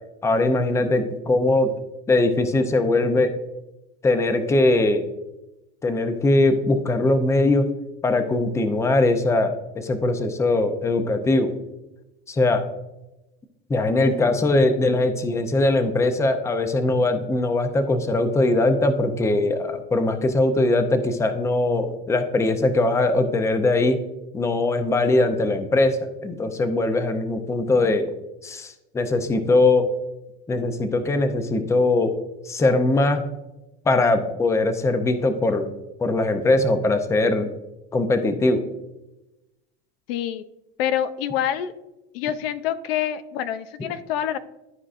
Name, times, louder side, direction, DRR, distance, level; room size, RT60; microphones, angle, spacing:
voice 1, 0.2-1.7 2.1-3.3 4.0-5.0 5.8-7.7 8.0-11.5 12.3-12.6 13.7-24.0 24.3-28.1 28.4-29.9 30.5-32.1 32.4-33.2 33.9-35.7 36.0-37.5 37.9-38.6, left 2 dB, 10° left, 9 dB, 0.5 m, -21 dB
voice 2, 40.1-40.4 40.8-41.7 42.1-44.4, left 10 dB, 75° left, 13 dB, 0.6 m, -26 dB
12.5 x 4.7 x 2.5 m, 0.98 s
supercardioid pair, 125°, 30 cm